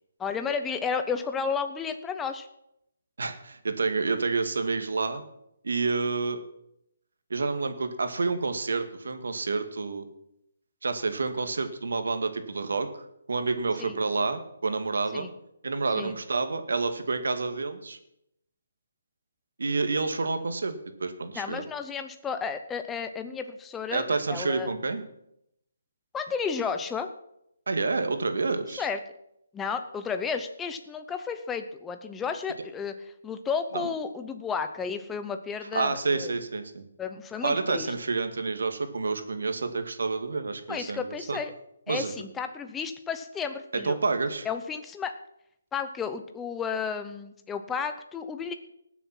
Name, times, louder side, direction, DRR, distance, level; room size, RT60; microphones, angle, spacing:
voice 1, 0.2-2.5 13.8-14.0 15.1-15.3 15.9-16.2 21.3-24.7 26.1-27.1 28.8-29.0 29.5-32.9 33.2-36.3 37.0-37.9 40.7-41.5 41.9-44.0 44.4-45.2 45.7-48.5, left 6 dB, 5° left, 8 dB, 0.7 m, -32 dB
voice 2, 3.2-5.2 5.6-6.4 7.3-10.1 10.8-12.9 13.3-15.3 15.6-18.0 19.6-20.7 21.0-21.6 23.9-25.0 27.7-28.8 33.7-33.9 35.7-36.9 37.4-41.4 41.9-42.1 43.8-44.5, right 4 dB, 75° right, 8 dB, 1.8 m, -29 dB
19.0 x 7.2 x 5.8 m, 0.80 s
hypercardioid pair, 170°, 0 cm